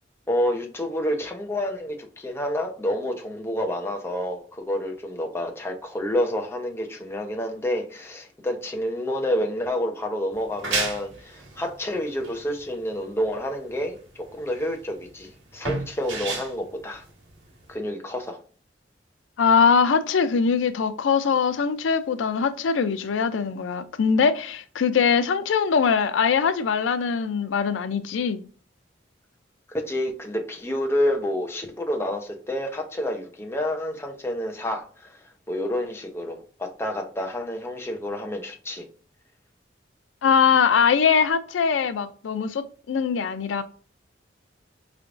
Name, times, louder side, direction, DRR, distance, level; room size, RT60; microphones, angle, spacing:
voice 1, 0.3-17.0 17.7-18.4 29.7-35.2 35.5-38.9, left 1 dB, 15° left, 0.7 m, -29 dB
sound 1, 10.3-17.7, right 3 dB, 80° right, 1.4 m, -33 dB
voice 2, 19.4-28.4 40.2-43.6, left 6 dB, 90° left, 0.4 m, -22 dB
4.5 x 3.4 x 2.5 m
head